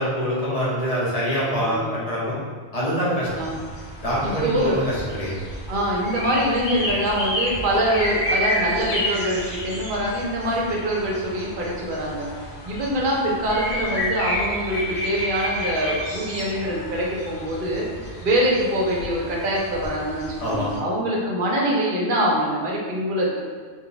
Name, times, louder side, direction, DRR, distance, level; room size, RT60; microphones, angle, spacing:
voice 1, 0.0-2.4 2.7-3.3 4.0-5.4 20.4-20.7, equal, 40° left, -6 dB, 0.8 m, -25 dB
voice 2, 1.6-1.9 3.4-3.5 4.2-4.8 5.7-12.3 12.6-17.8 18.2-23.4, equal, 55° right, -3 dB, 0.7 m, -24 dB
sound 1, 3.2-20.8, equal, 80° left, 1.0 m, -31 dB
2.7 x 2.2 x 3.9 m, 1.5 s
omnidirectional pair, 1.1 m